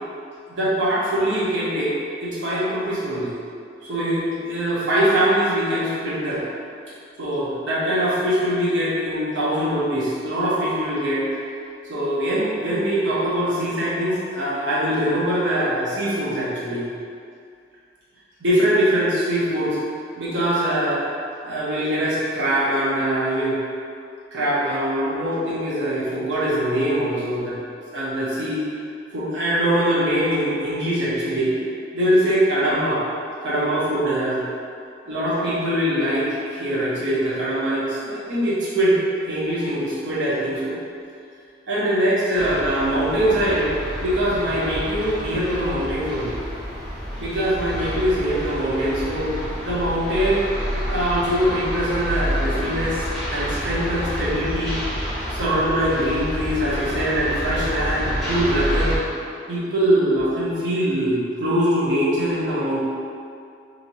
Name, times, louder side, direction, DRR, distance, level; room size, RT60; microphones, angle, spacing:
voice 1, 0.5-3.3 3.8-6.4 7.2-11.3 11.9-16.8 18.4-19.8 20.2-21.0 21.4-23.6 24.3-27.6 27.9-28.6 29.1-31.5 31.9-33.0 33.4-34.4 35.1-39.0 39.3-40.8 41.7-43.7 44.0-46.4 47.2-49.3 49.6-50.4 50.9-54.8 55.3-58.9 59.5-62.8, equal, 85° right, -7 dB, 0.8 m, -22 dB
sound 1, 42.3-59.0, equal, ahead, 1.0 m, -28 dB
3.0 x 2.7 x 2.6 m, 2.3 s
head